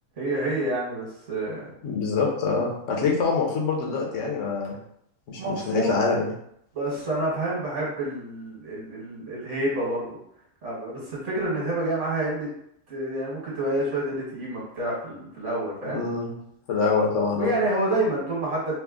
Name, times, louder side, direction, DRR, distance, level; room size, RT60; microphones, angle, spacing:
voice 1, 0.2-1.7 5.4-5.9 6.7-10.2 10.6-12.5 12.9-16.0 17.3-18.8, right 1 dB, 50° right, -5 dB, 1.4 m, -28 dB
voice 2, 1.8-4.7 5.3-6.3 15.9-16.3 16.7-17.5, left 4 dB, 60° left, -1 dB, 1.0 m, -25 dB
3.4 x 2.0 x 3.6 m, 0.71 s
omnidirectional pair, 1.7 m